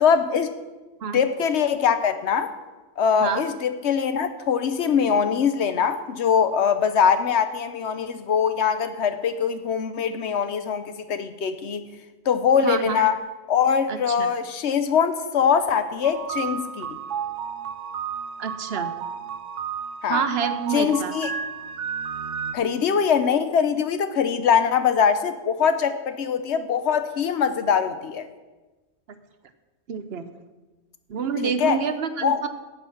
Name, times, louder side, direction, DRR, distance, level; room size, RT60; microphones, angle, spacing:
voice 1, 0.0-0.5 1.1-2.5 3.0-11.9 12.3-13.2 13.5-16.9 20.0-20.2 20.7-21.3 22.5-28.2 31.4-31.8 32.2-32.4, left 7 dB, 70° left, 10 dB, 1.0 m, -22 dB
voice 2, 12.6-13.1 13.9-14.3 18.4-18.9 20.1-21.1 29.9-30.3 31.1-32.5, right 6 dB, 60° right, 10 dB, 0.9 m, -28 dB
sound 1, 16.0-22.5, right 7 dB, 85° right, 1.1 m, -32 dB
11.0 x 7.7 x 5.8 m, 1.2 s
omnidirectional pair, 1.2 m